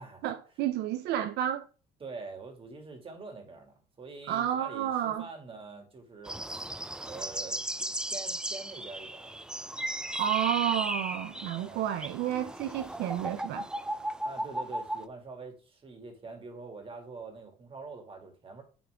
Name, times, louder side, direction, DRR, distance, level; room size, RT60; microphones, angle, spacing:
voice 1, 0.2-1.6 4.3-5.2 10.1-13.7, right 11 dB, 80° right, 0.5 m, -30 dB
voice 2, 2.0-6.7 7.0-9.4 11.5-11.8 14.2-18.6, right 3 dB, 30° right, 2.1 m, -45 dB
sound 1, 6.3-15.0, right 1 dB, 5° right, 0.4 m, -36 dB
10.0 x 3.6 x 3.4 m
cardioid pair, 110°, 17 cm